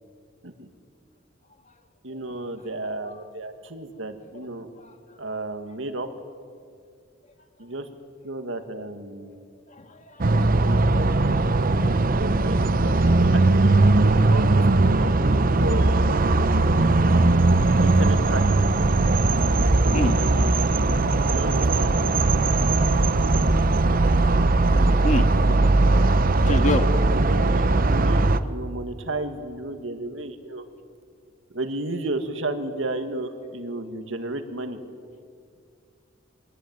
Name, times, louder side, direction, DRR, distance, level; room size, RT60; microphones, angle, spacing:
voice 1, 2.0-4.7 5.2-6.1 7.6-7.9 8.2-9.5 12.0-16.0 16.5-17.5 17.8-18.4 21.2-22.0 26.4-26.6 27.1-30.6 31.5-34.8, right 2 dB, 75° right, 7 dB, 2.0 m, -33 dB
voice 2, 4.8-5.2 9.7-10.5 19.9-20.2 20.5-21.2 25.0-25.3 26.5-26.9, left 1 dB, 40° left, 6 dB, 1.9 m, -29 dB
sound 1, 10.2-28.4, right 2 dB, 45° right, 0.8 m, -19 dB
24.5 x 18.5 x 9.4 m, 2.2 s
head